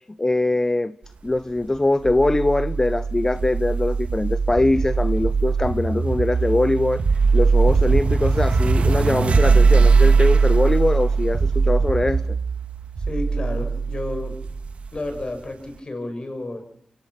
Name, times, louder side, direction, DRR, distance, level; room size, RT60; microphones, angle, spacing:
voice 1, 0.2-0.9 1.2-7.0 7.3-12.2, left 2 dB, 25° left, 15 dB, 0.8 m, -22 dB
sound 1, 2.1-15.2, right 4 dB, 65° right, 2.1 m, -20 dB
voice 2, 13.0-14.4 14.9-16.6, left 2 dB, 40° left, 7 dB, 7.0 m, -31 dB
25.0 x 17.5 x 6.0 m, 0.70 s
cardioid pair, 55°, 2 cm